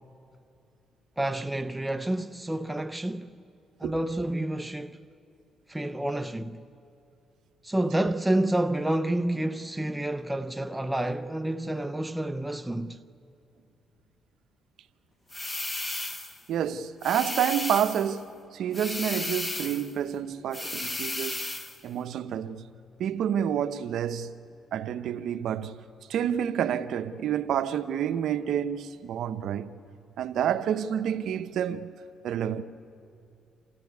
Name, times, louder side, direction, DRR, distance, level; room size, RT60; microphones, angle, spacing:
voice 1, 1.2-3.3 3.8-5.0 5.7-6.6 7.6-13.0, right 1 dB, 10° right, 0.6 m, -29 dB
sound 1, 15.3-16.4 17.0-18.1 18.7-19.9 20.5-21.8, left 2 dB, 20° left, 1.2 m, -34 dB
voice 2, 16.5-21.4 21.8-22.6 23.0-24.3 24.7-25.7 26.1-29.7 30.2-31.9 32.2-32.6, right 9 dB, 75° right, 0.8 m, -29 dB
27.5 x 14.5 x 9.5 m
cardioid pair, 90°, 0 cm